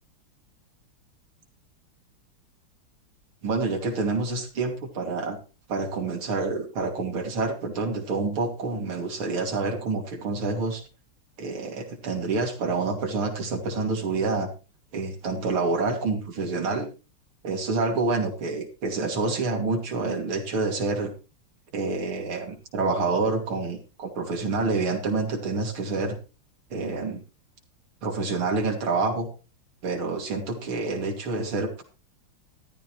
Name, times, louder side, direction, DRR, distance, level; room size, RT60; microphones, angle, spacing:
voice 1, 3.4-5.4 5.7-10.8 11.4-14.5 14.9-16.9 17.4-21.1 21.7-26.2 26.7-27.2 28.0-29.3 29.8-31.8, right 3 dB, 75° right, 3 dB, 3.5 m, -27 dB
14.5 x 13.5 x 3.1 m, 0.32 s
omnidirectional pair, 2.4 m